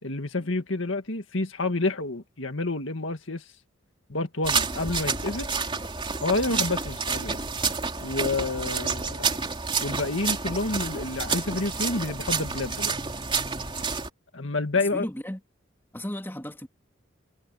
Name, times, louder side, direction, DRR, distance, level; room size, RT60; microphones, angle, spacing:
voice 1, 0.0-3.4 4.1-5.5 6.2-7.4 8.0-9.5 9.8-13.0 14.3-15.1, left 2 dB, 65° left, 2.1 m, -29 dB
sound 1, 4.4-14.1, right 5 dB, 25° right, 3.4 m, -29 dB
voice 2, 14.9-15.4 15.9-16.7, equal, 10° left, 2.6 m, -34 dB
head